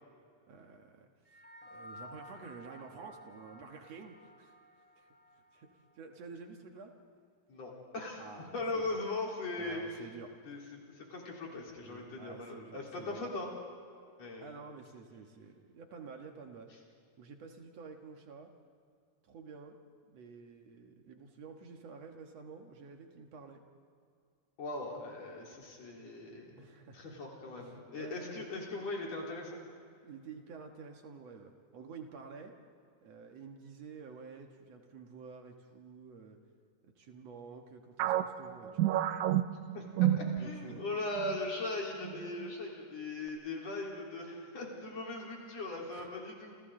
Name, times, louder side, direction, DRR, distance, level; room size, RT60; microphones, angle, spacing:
voice 1, 0.5-4.6 5.0-5.1 5.5-6.9 8.2-9.0 9.6-10.7 11.8-13.3 14.4-16.7 17.2-18.5 19.2-19.8 20.1-23.6 26.6-27.2 27.6-28.5 30.0-32.6 33.0-36.4 36.8-38.8 40.4-40.8 45.9-46.1, right 5 dB, 60° right, 3 dB, 2.5 m, -50 dB
sound 1, 1.3-5.9, equal, 5° left, 1.3 m, -54 dB
voice 2, 7.5-8.2 8.5-9.8 10.5-10.6 11.0-13.5 14.2-14.5 24.6-26.6 26.9-29.6 39.7-46.6, left 2 dB, 60° left, -3 dB, 5.0 m, -39 dB
sound 2, 38.0-40.8 41.2-41.4 42.0-42.5, right 12 dB, 80° right, 2.1 m, -30 dB
29.0 x 28.5 x 3.8 m, 2.3 s
omnidirectional pair, 3.4 m